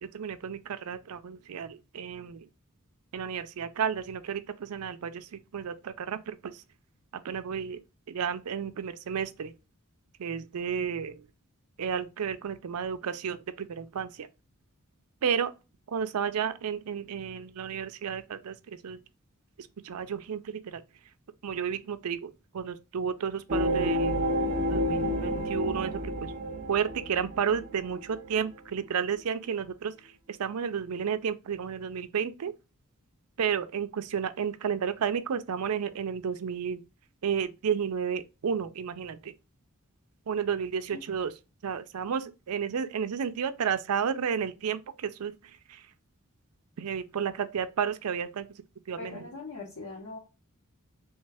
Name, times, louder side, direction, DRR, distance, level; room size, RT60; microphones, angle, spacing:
voice 1, 0.0-2.5 3.1-6.6 7.2-7.8 8.1-9.5 10.2-11.3 11.8-14.3 15.2-15.5 15.9-19.0 19.6-20.8 21.4-24.2 24.7-26.3 26.7-32.5 33.4-36.8 37.2-39.3 40.3-41.3 41.6-45.9 46.8-48.5 48.9-49.3, right 7 dB, 80° right, 0.4 m, -32 dB
sound 1, 23.5-28.3 28.8-28.9, equal, 35° right, 0.7 m, -30 dB
voice 2, 48.9-50.2, left 3 dB, 65° left, 1.1 m, -41 dB
3.2 x 3.2 x 3.4 m
head